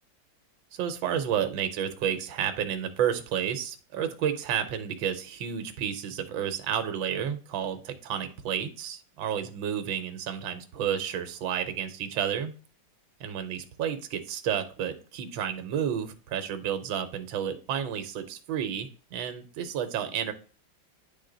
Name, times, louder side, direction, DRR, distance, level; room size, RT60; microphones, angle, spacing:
voice 1, 0.7-12.5 13.2-20.3, right 9 dB, 75° right, 9 dB, 1.5 m, -31 dB
9.5 x 3.7 x 3.8 m, 0.38 s
omnidirectional pair, 2.2 m